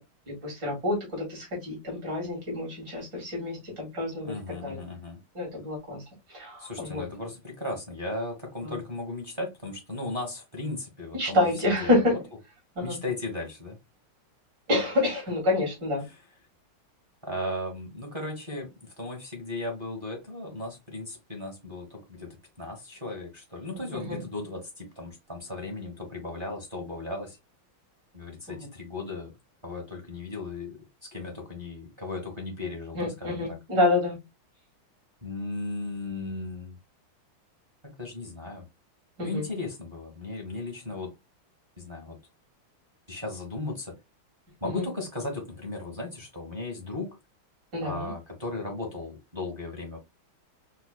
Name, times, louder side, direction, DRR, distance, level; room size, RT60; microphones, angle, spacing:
voice 1, 0.3-4.8 5.3-6.0 6.3-7.1 8.6-8.8 11.1-12.1 12.7-13.0 14.7-16.1 23.9-24.2 28.5-28.7 32.9-34.2 39.2-39.5 44.6-44.9 47.7-48.1, left 2 dB, 55° right, 3.1 m, -28 dB
voice 2, 4.2-5.2 6.6-12.0 12.8-13.8 17.2-27.4 28.1-29.3 29.6-33.6 35.2-36.8 37.8-38.6 39.2-41.1 41.8-42.2 43.1-44.0 44.6-47.2 47.8-50.0, left 2 dB, 25° right, 0.6 m, -36 dB
5.4 x 2.4 x 2.3 m
omnidirectional pair, 2.3 m